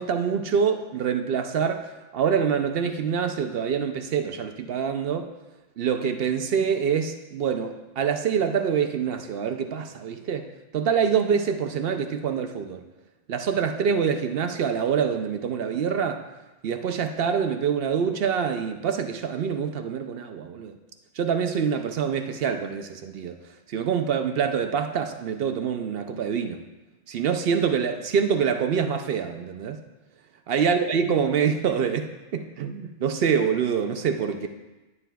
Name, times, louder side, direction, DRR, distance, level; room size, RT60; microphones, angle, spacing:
voice 1, 0.0-5.3 5.8-10.5 10.7-12.8 13.3-16.2 16.6-20.8 21.1-26.6 27.1-29.8 30.5-34.5, right 7 dB, 60° right, 7 dB, 0.7 m, -25 dB
10.5 x 9.5 x 2.3 m, 1.1 s
omnidirectional pair, 1.2 m